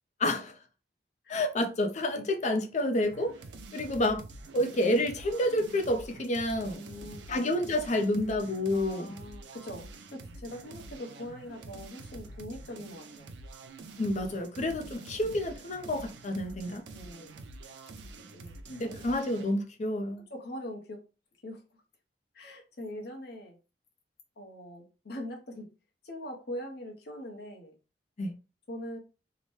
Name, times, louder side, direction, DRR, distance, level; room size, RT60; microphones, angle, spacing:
voice 1, 0.2-0.5 1.3-3.4 3.7-4.2 4.5-6.8 7.3-9.1 14.0-16.8 18.7-20.2 28.2-28.3, left 1 dB, 45° left, 0.5 m, -29 dB
sound 1, 3.0-19.5, right 3 dB, 80° right, 0.5 m, -47 dB
voice 2, 6.7-7.6 8.7-9.8 10.1-13.3 14.5-14.7 16.9-17.4 18.3-19.2 20.2-21.0 21.4-21.6 22.3-23.6 24.4-25.7 26.0-27.8 28.7-29.0, left 1 dB, 65° left, 0.8 m, -42 dB
2.8 x 2.1 x 3.1 m
head